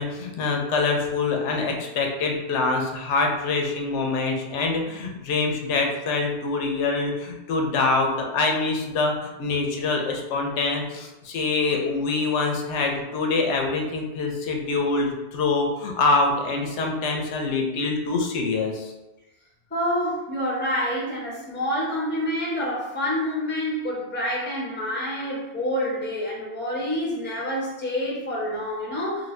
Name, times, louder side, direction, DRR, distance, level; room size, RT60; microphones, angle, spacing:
voice 1, 0.0-18.9, left 3 dB, 85° left, 2 dB, 0.9 m, -25 dB
voice 2, 19.7-29.3, equal, 10° left, -4 dB, 0.6 m, -27 dB
2.7 x 2.6 x 3.1 m, 1.0 s
omnidirectional pair, 1.2 m